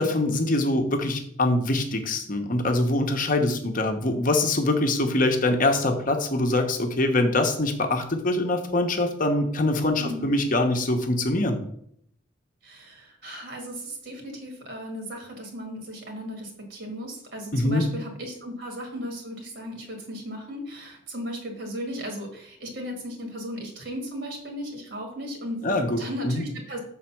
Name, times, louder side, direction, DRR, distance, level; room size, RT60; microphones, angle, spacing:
voice 1, 0.0-11.6 17.5-17.8 25.6-26.0 26.2-26.4, left 2 dB, 45° left, 5 dB, 1.0 m, -24 dB
voice 2, 3.4-3.8 10.0-10.4 12.6-26.8, equal, 65° right, 3 dB, 1.9 m, -36 dB
6.5 x 4.0 x 5.9 m, 0.68 s
head